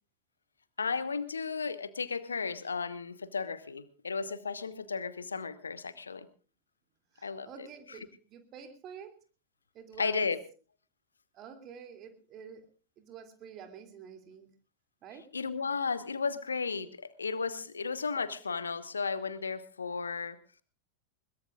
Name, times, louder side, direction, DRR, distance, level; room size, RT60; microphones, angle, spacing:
voice 1, 0.8-6.3 7.2-7.7 10.0-10.4 15.3-20.4, left 5 dB, 75° left, 14 dB, 1.2 m, -34 dB
voice 2, 7.1-9.1 9.7-10.3 11.3-12.7 13.0-14.5 15.0-15.3 16.2-16.4, right 7 dB, 35° right, 7 dB, 2.8 m, -48 dB
22.0 x 20.5 x 2.5 m, 0.36 s
figure-of-eight pair, 90°, 0 cm